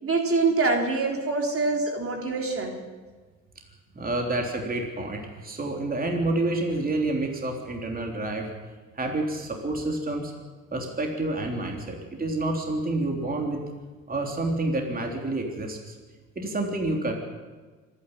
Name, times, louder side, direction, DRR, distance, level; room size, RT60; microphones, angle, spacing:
voice 1, 0.0-2.7, right 3 dB, 45° right, 2 dB, 3.7 m, -25 dB
voice 2, 4.0-8.5 8.9-10.3 10.7-13.6 14.1-15.9 16.4-17.1, right 2 dB, 30° right, 1 dB, 3.5 m, -28 dB
25.5 x 11.0 x 9.9 m, 1.4 s
cardioid pair, 90°, 30 cm